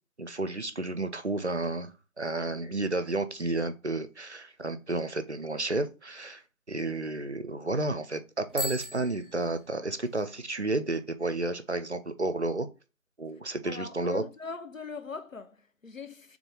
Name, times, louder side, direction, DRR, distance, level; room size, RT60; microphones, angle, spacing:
voice 1, 0.2-6.4 6.7-12.7 13.2-14.2, right 2 dB, 55° right, 0.5 m, -31 dB
Bicycle bell, 8.5-10.2, equal, ahead, 0.5 m, -38 dB
voice 2, 13.7-16.4, left 5 dB, 65° left, 0.8 m, -40 dB
3.7 x 3.2 x 3.6 m
figure-of-eight pair, 180°, 42 cm